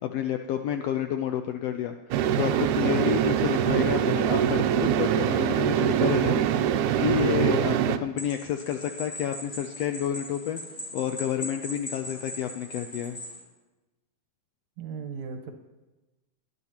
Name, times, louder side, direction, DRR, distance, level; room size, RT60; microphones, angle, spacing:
voice 1, 0.0-10.6 10.9-13.2, left 9 dB, 85° left, 6 dB, 1.4 m, -30 dB
sound 1, 2.1-8.0, right 9 dB, 90° right, 2.0 m, -24 dB
sound 2, 8.2-13.4, left 1 dB, 20° left, 3.4 m, -39 dB
voice 2, 14.8-15.5, right 6 dB, 70° right, 5 dB, 2.2 m, -37 dB
20.5 x 10.5 x 2.9 m, 1.1 s
omnidirectional pair, 3.4 m